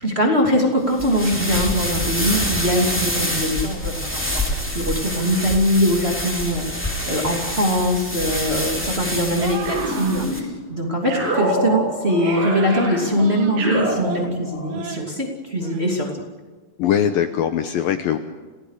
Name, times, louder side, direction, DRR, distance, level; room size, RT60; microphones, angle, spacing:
voice 1, 0.0-16.1, equal, 20° right, 0 dB, 2.3 m, -22 dB
sound 1, 0.9-10.4, equal, 5° left, 2.2 m, -26 dB
sound 2, 9.4-10.3 11.0-11.6 12.0-13.6 14.0-14.3 14.7-15.1 15.5-15.8, right 6 dB, 85° right, 4.4 m, -34 dB
sound 3, 9.6-10.6 11.1-14.7, right 1 dB, 55° right, 8.3 m, -26 dB
voice 2, 16.8-18.2, left 9 dB, 75° left, 8 dB, 2.3 m, -21 dB
29.0 x 16.5 x 6.6 m, 1.3 s
omnidirectional pair, 4.8 m